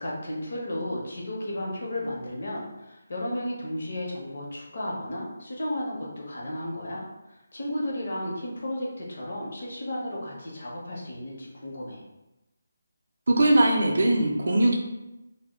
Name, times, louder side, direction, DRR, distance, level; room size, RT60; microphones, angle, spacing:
voice 1, 0.0-7.0 7.5-12.0, left 1 dB, 45° left, -4 dB, 0.6 m, -33 dB
voice 2, 13.3-14.7, right 1 dB, 50° right, 0 dB, 0.4 m, -20 dB
2.1 x 2.0 x 3.4 m, 0.97 s
hypercardioid pair, 180°, 0 cm